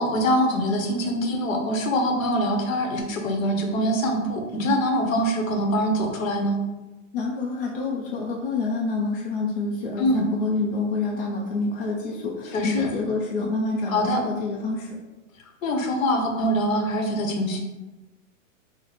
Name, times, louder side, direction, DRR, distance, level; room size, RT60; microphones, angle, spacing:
voice 1, 0.0-6.6 10.0-10.3 12.5-12.9 13.9-14.2 15.6-17.6, equal, 85° left, 3 dB, 0.9 m, -24 dB
voice 2, 7.1-14.9, left 3 dB, 45° left, -2 dB, 0.4 m, -27 dB
3.2 x 2.0 x 3.9 m, 1.1 s
hypercardioid pair, 165°, 39 cm